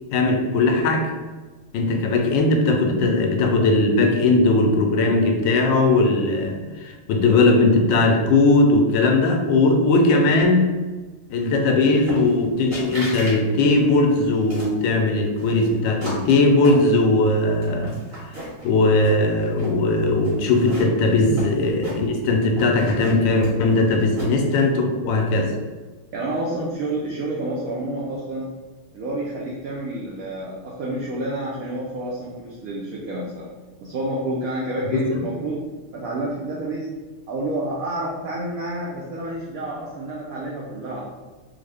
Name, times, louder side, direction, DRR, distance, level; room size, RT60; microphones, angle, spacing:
voice 1, 0.1-1.1 1.7-10.7 11.3-18.0 18.3-18.4 18.6-25.5 34.9-35.2, left 2 dB, 80° left, 2 dB, 1.2 m, -19 dB
sound 1, 12.1-12.5 12.7-13.4 13.7-14.8 15.4-17.3 17.6-18.7 19.0-19.8 20.2-22.3 22.6-24.5, right 1 dB, 50° right, 1.6 m, -35 dB
voice 2, 26.1-28.5 28.9-33.5 33.8-35.6 35.9-36.9 37.3-41.0, right 1 dB, 80° right, -4 dB, 0.7 m, -29 dB
3.6 x 2.0 x 3.3 m, 1.3 s
omnidirectional pair, 2.0 m